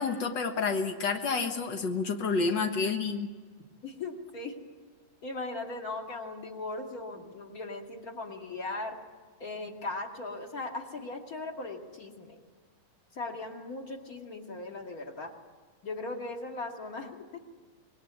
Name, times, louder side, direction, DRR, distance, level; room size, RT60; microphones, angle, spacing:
voice 1, 0.0-3.3, left 4 dB, 90° left, 4 dB, 0.9 m, -29 dB
voice 2, 3.8-4.6 5.2-9.0 9.4-12.4 13.1-15.3 15.8-17.4, left 2 dB, 30° left, 2 dB, 2.2 m, -38 dB
25.5 x 21.5 x 9.5 m, 1.5 s
omnidirectional pair, 4.4 m